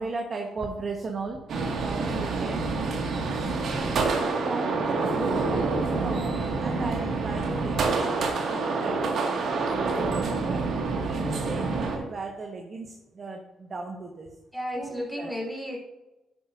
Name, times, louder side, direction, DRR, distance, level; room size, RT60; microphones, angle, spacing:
voice 1, 0.0-1.4 1.8-2.6 3.7-10.6 11.0-14.3 14.7-15.3, right 3 dB, 40° right, 2 dB, 1.3 m, -37 dB
sound 1, 1.5-12.0, right 3 dB, 65° right, 1.9 m, -27 dB
voice 2, 14.5-15.8, equal, 5° left, -2 dB, 2.9 m, -33 dB
10.5 x 8.7 x 2.6 m, 1.0 s
cardioid pair, 90°, 0 cm